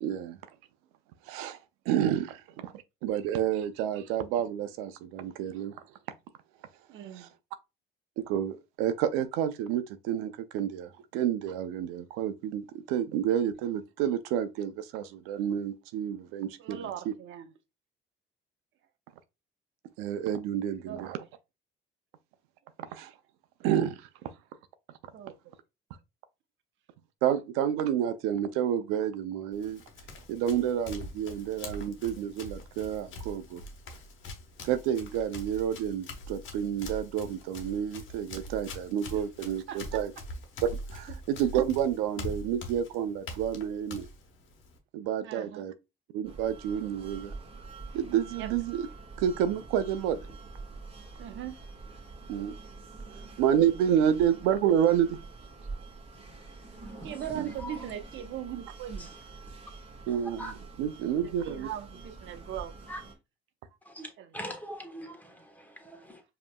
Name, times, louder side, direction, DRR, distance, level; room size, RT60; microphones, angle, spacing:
voice 1, 0.0-0.4 1.3-1.6 1.9-2.7 3.0-5.8 7.1-7.3 8.2-17.1 20.0-21.2 22.8-23.1 23.6-24.3 27.2-29.8 30.3-33.6 34.6-40.1 40.9-44.1 44.9-45.7 46.1-47.3 47.9-48.9 49.2-50.2 52.3-52.6 53.1-55.2 57.3-57.5 60.1-61.7, right 9 dB, 85° right, 0.5 m, -29 dB
voice 2, 6.9-7.3 16.6-17.5 20.9-21.1 25.1-25.3 39.1-39.2 39.7-40.0 45.2-45.6 48.4-48.5 51.2-51.6 57.0-59.1 61.4-62.7 64.2-64.3, right 10 dB, 65° right, 0.8 m, -39 dB
Run, 29.5-44.8, left 1 dB, 65° left, 1.2 m, -43 dB
sound 1, 46.2-63.1, right 3 dB, 25° right, 1.5 m, -46 dB
voice 3, 63.8-66.2, equal, 10° left, 1.3 m, -42 dB
5.1 x 2.9 x 2.2 m
supercardioid pair, 75°, 21 cm